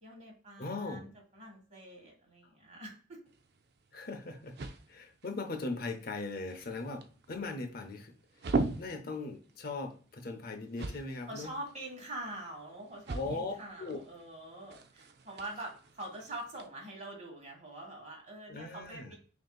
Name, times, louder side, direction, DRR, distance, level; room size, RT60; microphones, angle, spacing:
voice 1, 0.0-3.2 11.3-19.2, right 1 dB, 40° right, 0 dB, 1.7 m, -45 dB
voice 2, 0.6-1.0 3.9-4.6 4.9-8.1 8.8-11.5 13.1-14.0 18.5-19.1, left 3 dB, 55° left, 6 dB, 0.6 m, -39 dB
sound 1, 3.3-16.7, right 3 dB, 60° right, 0.5 m, -42 dB
6.3 x 2.7 x 2.3 m, 0.41 s
head